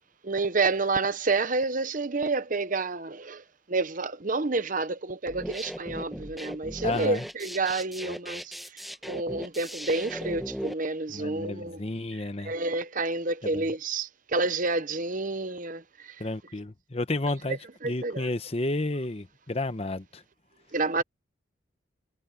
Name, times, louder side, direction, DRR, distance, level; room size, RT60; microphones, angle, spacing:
voice 1, 0.2-11.8 12.4-16.2 17.5-17.6 17.8-18.3 20.7-21.0, right 3 dB, 40° right, 0.9 m, -29 dB
sound 1, 5.3-10.7, equal, ahead, 1.2 m, -38 dB
voice 2, 6.8-7.2 11.1-12.5 13.4-13.6 16.2-17.6 17.8-20.2, left 2 dB, 30° left, 1.0 m, -31 dB
head